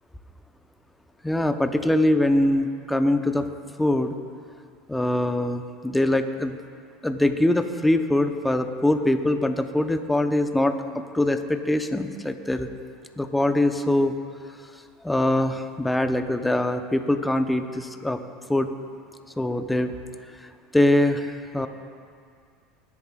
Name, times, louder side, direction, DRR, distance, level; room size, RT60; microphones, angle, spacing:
voice 1, 1.2-3.5 3.8-4.2 4.9-6.6 7.0-12.7 13.2-14.2 15.0-18.2 18.5-18.7 19.4-19.9 20.4-21.7, left 1 dB, 5° left, 7 dB, 0.9 m, -23 dB
20.5 x 11.0 x 2.4 m, 2.2 s
hypercardioid pair, 85°, 0 cm